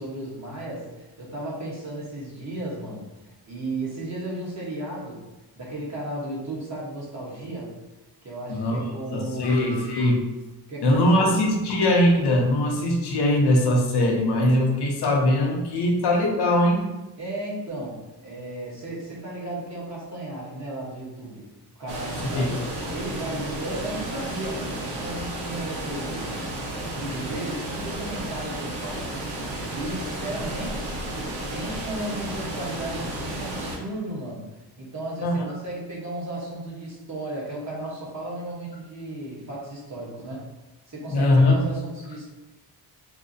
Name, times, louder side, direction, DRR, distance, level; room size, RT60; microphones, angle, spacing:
voice 1, 0.0-3.1 3.5-5.2 5.6-7.7 8.2-10.0 10.7-11.4 17.2-21.5 21.8-26.4 26.9-29.2 29.7-31.0 31.5-34.4 34.8-40.5 40.9-42.3, right 1 dB, 40° right, -5 dB, 1.2 m, -34 dB
voice 2, 9.1-10.3 10.8-16.9 22.3-22.5 35.2-35.4 41.1-41.6, left 1 dB, 70° left, 1 dB, 0.7 m, -21 dB
sound 1, 21.9-33.8, right 1 dB, 70° right, 0.8 m, -32 dB
4.3 x 2.1 x 2.6 m, 1.1 s
cardioid pair, 115°, 40 cm